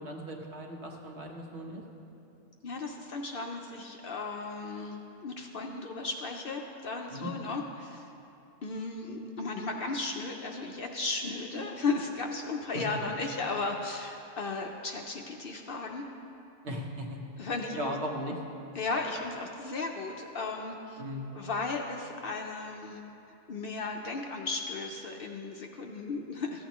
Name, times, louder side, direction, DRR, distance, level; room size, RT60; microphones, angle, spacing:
voice 1, 0.0-1.8 7.1-7.3 12.7-12.8 16.6-17.2 17.8-18.3 21.0-21.3, equal, 60° right, 1 dB, 1.3 m, -37 dB
voice 2, 2.6-8.1 8.6-16.0 17.4-17.8 18.7-21.0 21.3-26.6, left 3 dB, 55° left, 2 dB, 0.7 m, -35 dB
14.5 x 9.4 x 3.0 m, 2.8 s
omnidirectional pair, 1.3 m